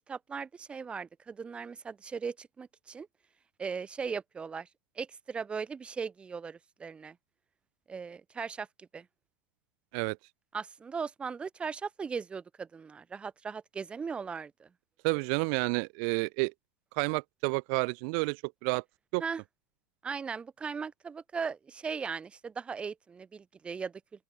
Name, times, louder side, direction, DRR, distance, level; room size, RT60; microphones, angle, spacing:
voice 1, 0.0-3.1 3.6-4.7 5.0-7.2 7.9-9.1 10.5-14.7 19.2-19.4 20.0-24.0, right 5 dB, 10° right, 7.7 m, -38 dB
voice 2, 15.0-16.5 16.9-18.8 19.1-19.2, right 40 dB or more, 45° right, 3.0 m, -30 dB
open air
supercardioid pair, 180°, 9 cm